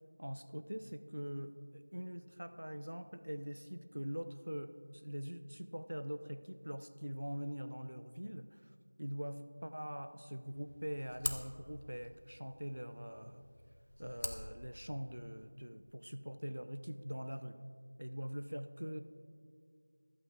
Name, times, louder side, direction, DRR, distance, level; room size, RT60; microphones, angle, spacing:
voice 1, 0.2-8.7 9.0-13.5 14.0-17.6 18.0-19.0, equal, 75° right, 10 dB, 0.7 m, -43 dB
sound 1, 10.4-15.5, left 1 dB, 50° left, 0.9 m, -46 dB
25.0 x 8.5 x 2.5 m, 2.1 s
figure-of-eight pair, 175°, 0 cm